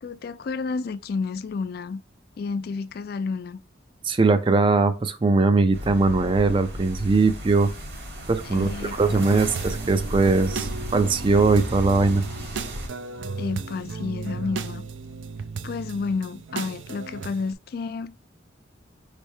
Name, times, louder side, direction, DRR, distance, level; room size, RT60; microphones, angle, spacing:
voice 1, 0.0-2.0 2.4-3.6 8.4-9.0 13.4-14.8 15.6-18.3, left 4 dB, 55° left, 0.3 m, -30 dB
voice 2, 4.0-7.7 8.3-8.7 9.0-12.2, right 3 dB, 25° right, 0.4 m, -20 dB
sound 1, 5.7-12.9, equal, 55° right, 1.5 m, -35 dB
sound 2, 9.1-17.5, right 4 dB, 80° right, 0.5 m, -35 dB
5.4 x 3.3 x 2.7 m
head